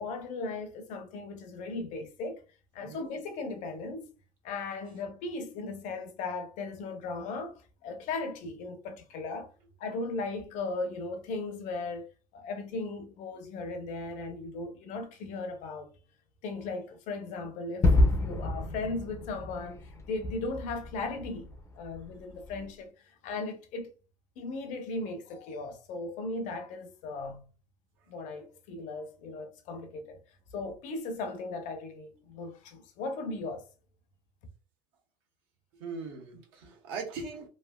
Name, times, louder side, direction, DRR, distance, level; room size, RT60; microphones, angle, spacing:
voice 1, 0.0-2.4 2.7-4.1 4.4-9.5 9.8-15.9 16.4-21.5 21.8-23.9 24.4-27.4 28.1-30.2 30.5-33.6, left 3 dB, 60° left, 0.6 m, -37 dB
Gunshot gunfire / Fireworks / Boom, 17.8-22.6, left 2 dB, 20° left, 0.5 m, -29 dB
voice 2, 35.7-37.5, right 4 dB, 80° right, 1.1 m, -40 dB
3.1 x 2.5 x 2.2 m
cardioid pair, 135°, 14 cm